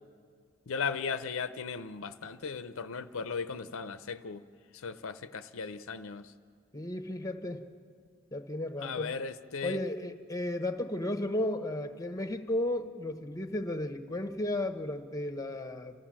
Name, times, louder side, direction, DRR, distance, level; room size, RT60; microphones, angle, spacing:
voice 1, 0.7-4.4 4.8-6.3 8.8-9.8, left 5 dB, 65° left, 11 dB, 0.6 m, -36 dB
voice 2, 6.7-7.6 8.3-9.1 9.6-15.9, left 1 dB, 15° left, 8 dB, 1.0 m, -34 dB
29.0 x 14.5 x 7.5 m, 2.1 s
head